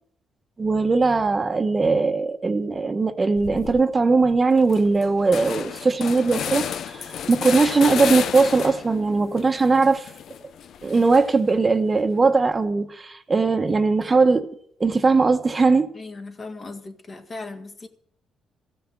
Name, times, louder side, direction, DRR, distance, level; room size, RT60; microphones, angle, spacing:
voice 1, 0.6-10.1 10.8-14.5 14.8-15.9, right 4 dB, 30° right, 1.0 m, -20 dB
sound 1, 3.4-3.8 4.2-4.3 4.6-9.0 9.4-11.5, left 8 dB, 65° left, 0.6 m, -31 dB
voice 2, 15.9-17.9, left 3 dB, 40° left, 2.0 m, -37 dB
15.5 x 5.9 x 10.0 m
cardioid pair, 90°, 0 cm